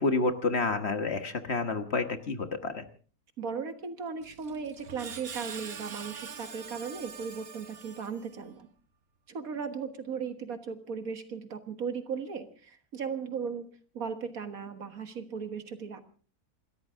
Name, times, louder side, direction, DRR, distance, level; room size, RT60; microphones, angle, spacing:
voice 1, 0.0-2.8, left 3 dB, 45° left, 8 dB, 1.5 m, -29 dB
voice 2, 3.4-8.7 9.3-13.7 13.9-16.0, right 6 dB, 65° right, 9 dB, 1.9 m, -37 dB
Screech, 4.2-8.5, right 6 dB, 45° right, 1.2 m, -44 dB
28.0 x 13.5 x 3.7 m, 0.40 s
omnidirectional pair, 1.6 m